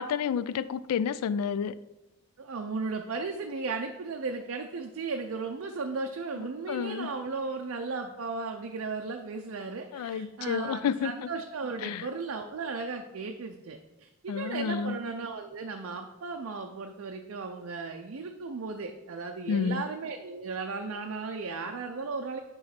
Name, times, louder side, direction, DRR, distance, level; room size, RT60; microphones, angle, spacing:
voice 1, 0.0-1.8 6.4-7.1 9.9-11.3 11.8-12.1 14.3-15.0 19.5-19.8, left 7 dB, 85° left, 16 dB, 0.3 m, -30 dB
voice 2, 2.4-22.4, right 4 dB, 65° right, 4 dB, 0.5 m, -35 dB
7.5 x 3.1 x 5.8 m, 1.0 s
head